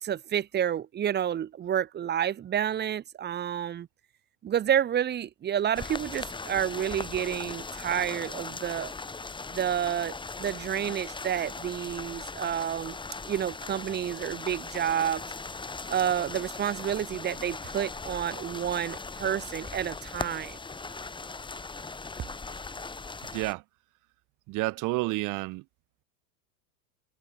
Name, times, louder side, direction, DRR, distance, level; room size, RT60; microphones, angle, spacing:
voice 1, 0.0-3.9 4.4-8.9 9.5-13.0 13.3-15.2 15.9-20.6, right 9 dB, 20° right, 1.3 m, -29 dB
sound 1, 5.7-23.5, left 4 dB, 10° left, 3.8 m, -39 dB
voice 2, 23.3-23.6 24.5-25.6, right 23 dB, 40° right, 1.4 m, -30 dB
supercardioid pair, 130°, 47 cm